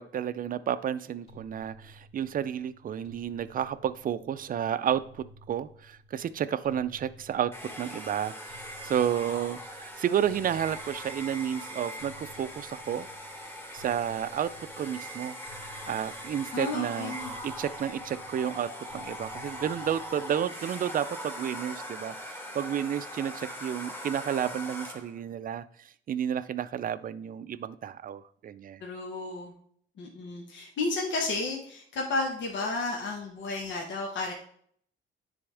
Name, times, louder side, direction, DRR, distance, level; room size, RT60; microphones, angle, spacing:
voice 1, 0.0-13.1 13.7-15.4 15.9-17.2 17.4-28.8, right 9 dB, 45° right, 15 dB, 0.4 m, -31 dB
sound 1, 1.3-20.6, equal, 30° left, 3.0 m, -55 dB
Domestic sounds home sounds, 7.5-25.2, equal, 10° left, 2.2 m, -41 dB
voice 2, 16.5-17.3 28.8-29.5 30.0-34.3, left 3 dB, 70° left, 0 dB, 1.2 m, -32 dB
9.6 x 3.5 x 3.4 m, 0.62 s
cardioid pair, 90°, 20 cm